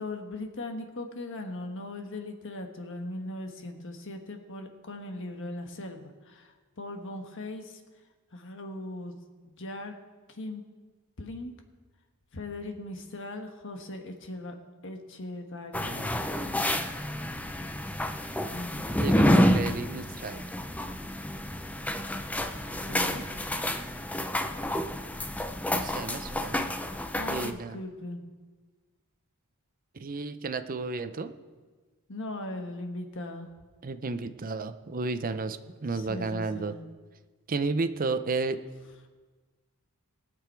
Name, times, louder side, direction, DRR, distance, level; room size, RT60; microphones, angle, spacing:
voice 1, 0.0-7.8 8.3-9.2 9.4-9.9 10.3-10.6 11.2-11.5 12.3-14.6 14.8-16.1 18.5-18.9 22.9-23.2 27.1-28.2 32.1-33.5 35.9-36.8, left 2 dB, 60° left, 5 dB, 1.3 m, -39 dB
sound 1, 15.7-27.5, left 1 dB, 5° left, 0.5 m, -29 dB
voice 2, 19.0-20.4 25.7-26.6 27.3-27.8 29.9-31.3 33.8-36.7 37.5-38.6, right 3 dB, 40° right, 11 dB, 0.6 m, -32 dB
20.0 x 6.9 x 4.6 m, 1.4 s
head